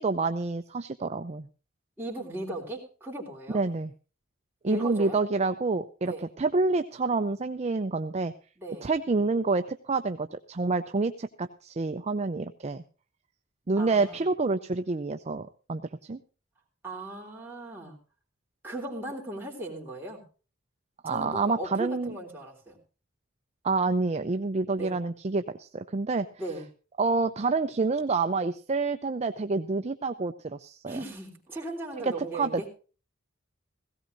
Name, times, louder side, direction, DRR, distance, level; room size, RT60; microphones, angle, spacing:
voice 1, 0.0-1.5 3.5-3.9 4.6-8.3 8.8-12.8 13.7-16.2 21.0-22.2 23.6-26.3 27.0-31.0 32.0-32.7, right 3 dB, 35° right, 9 dB, 0.5 m, -28 dB
voice 2, 2.0-3.6 4.7-5.2 6.0-6.2 8.6-8.9 13.8-14.2 16.8-18.0 18.6-20.2 21.0-22.8 24.8-24.9 26.4-26.7 30.8-32.7, right 1 dB, 10° right, -2 dB, 3.4 m, -37 dB
17.5 x 16.5 x 2.6 m, 0.36 s
head